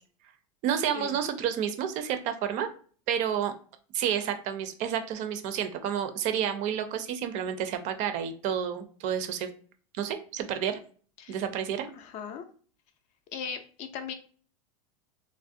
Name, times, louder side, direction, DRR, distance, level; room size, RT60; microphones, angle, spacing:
voice 1, 0.6-2.7 3.1-3.5 3.9-9.5 9.9-10.8 11.3-11.9, right 9 dB, 45° right, 9 dB, 0.4 m, -30 dB
voice 2, 11.9-12.4 13.3-14.1, left 7 dB, 45° left, 8 dB, 0.4 m, -38 dB
2.5 x 2.0 x 2.5 m, 0.44 s
hypercardioid pair, 105°, 17 cm